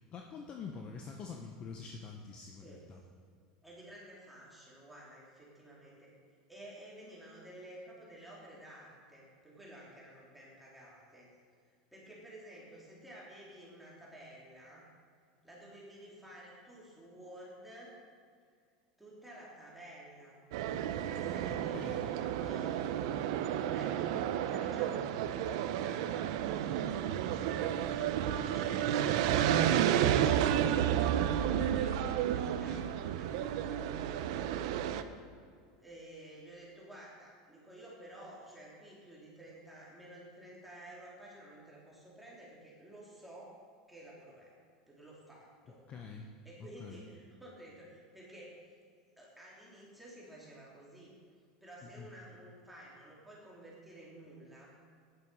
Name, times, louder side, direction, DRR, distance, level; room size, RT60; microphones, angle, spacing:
voice 1, 0.0-3.0 21.7-22.1 45.9-46.3 46.6-47.0 51.8-52.1, left 5 dB, 35° left, 2 dB, 0.9 m, -46 dB
voice 2, 3.6-6.1 6.5-11.3 11.6-14.9 15.4-17.9 19.0-20.4 21.1-23.1 23.7-30.4 30.8-34.8 35.8-43.6 43.9-44.5 44.9-45.8 46.4-48.7 49.2-51.1 51.6-54.7, right 1 dB, 5° right, -6 dB, 3.0 m, -52 dB
sound 1, 20.5-35.0, right 10 dB, 70° right, 0.7 m, -31 dB
11.0 x 10.0 x 5.4 m, 2.2 s
supercardioid pair, 125°, 3 cm